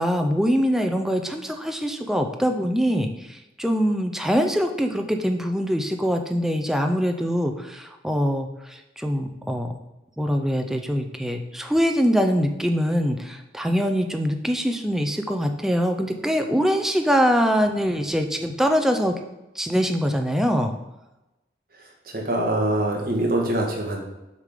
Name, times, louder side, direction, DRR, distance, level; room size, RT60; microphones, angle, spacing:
voice 1, 0.0-8.5 9.0-9.7 10.2-19.1 19.6-20.7, equal, ahead, 4 dB, 0.4 m, -23 dB
voice 2, 22.0-24.0, right 1 dB, 55° right, -1 dB, 1.4 m, -24 dB
6.6 x 3.6 x 4.9 m, 0.99 s
head